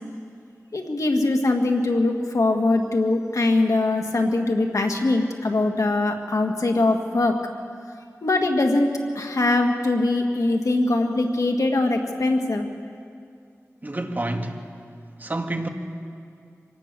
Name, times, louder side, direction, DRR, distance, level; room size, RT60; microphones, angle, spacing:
voice 1, 0.7-7.4 8.2-12.7, left 2 dB, 85° left, 1.8 m, -22 dB
voice 2, 13.8-14.7 15.2-15.7, right 1 dB, 35° right, 1.8 m, -28 dB
25.5 x 18.0 x 6.9 m
wide cardioid pair, 70°, 5 cm